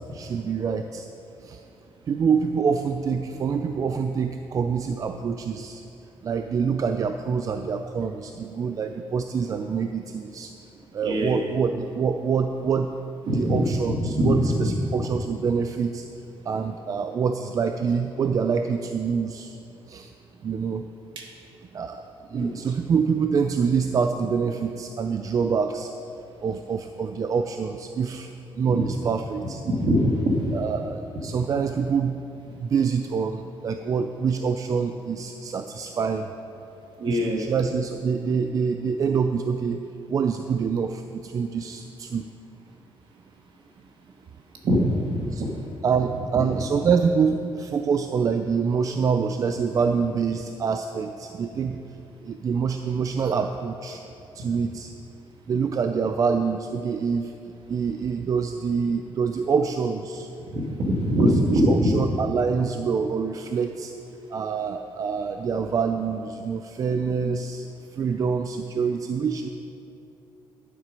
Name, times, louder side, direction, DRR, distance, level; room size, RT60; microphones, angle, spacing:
voice 1, 0.1-1.1 1.4-1.6 2.1-5.8 6.2-10.5 10.9-12.9 13.3-16.0 16.5-19.6 19.9-20.1 20.4-20.9 21.7-25.9 26.4-28.3 28.5-29.6 30.5-36.3 37.0-39.8 40.1-42.2 45.3-45.4 45.8-52.0 52.2-54.0 54.3-54.9 55.5-57.3 57.7-60.3 61.2-63.9 64.3-67.7 67.9-69.5, right 6 dB, 40° right, 7 dB, 0.4 m, -26 dB
voice 2, 11.0-11.5 13.3-14.7 21.2-21.3 22.3-22.5 29.6-30.6 37.0-37.5 44.6-45.5 60.5-62.0 67.2-67.3, equal, 60° right, 0 dB, 1.9 m, -23 dB
12.0 x 7.6 x 5.2 m, 2.8 s
cardioid pair, 135°, 9 cm